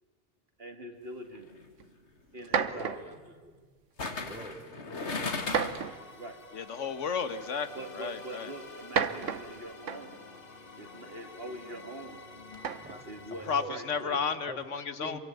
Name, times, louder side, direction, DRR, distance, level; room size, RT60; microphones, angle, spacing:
voice 1, 0.6-1.5 2.3-3.0 6.2-6.4 7.7-10.1 10.8-12.2 13.0-14.2, right 1 dB, 55° right, 5 dB, 2.7 m, -43 dB
sound 1, 1.4-1.6 4.0-5.9 6.3-6.4, left 3 dB, 65° left, 2.3 m, -35 dB
sound 2, 1.8-1.9 2.4-3.2 4.1-4.4 5.5-6.2 7.3-7.4 8.7-10.2 12.5-13.0, right 7 dB, 90° right, 1.4 m, -32 dB
voice 2, 2.5-3.6 4.1-5.2 12.8-13.1 13.6-13.8 14.5-14.6 15.0-15.2, equal, 5° right, 6 dB, 2.3 m, -46 dB
sound 3, 5.1-13.7, left 4 dB, 50° left, 1.9 m, -49 dB
voice 3, 6.5-8.5 13.5-15.2, left 6 dB, 85° left, 12 dB, 1.6 m, -33 dB
26.5 x 24.0 x 9.3 m, 1.4 s
omnidirectional pair, 1.2 m